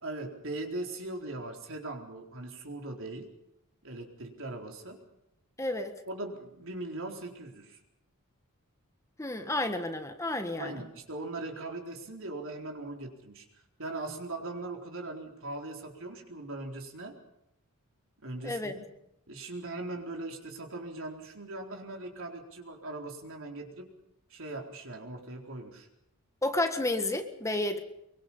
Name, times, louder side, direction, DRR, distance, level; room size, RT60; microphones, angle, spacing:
voice 1, 0.0-3.3 3.8-5.0 6.1-7.8 10.5-13.4 13.8-17.2 18.2-18.8 19.3-23.9 24.3-25.9, right 2 dB, 65° right, 2 dB, 4.2 m, -40 dB
voice 2, 5.6-6.0 9.2-10.8 18.4-18.7 26.4-27.8, left 2 dB, 15° left, 6 dB, 1.5 m, -31 dB
24.0 x 23.5 x 5.6 m, 0.82 s
head